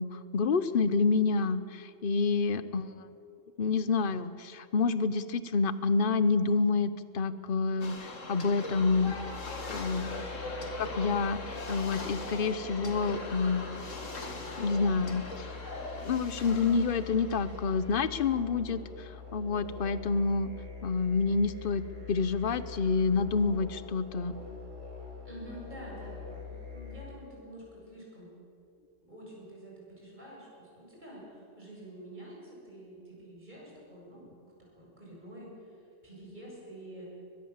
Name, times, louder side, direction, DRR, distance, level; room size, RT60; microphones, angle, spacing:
voice 1, 0.0-3.1 3.6-9.1 9.7-10.1 10.8-13.7 14.6-15.5 16.0-20.5 20.8-24.4, left 4 dB, 50° left, 14 dB, 1.0 m, -28 dB
sound 1, 7.8-18.2, left 2 dB, 85° left, 2.5 m, -40 dB
sound 2, 8.7-27.1, left 5 dB, 85° right, 7.5 m, -44 dB
voice 2, 9.6-10.3 25.2-28.3 29.0-34.3 34.6-37.2, right 1 dB, 35° right, -4 dB, 8.1 m, -48 dB
22.0 x 22.0 x 7.4 m, 2.6 s
omnidirectional pair, 1.3 m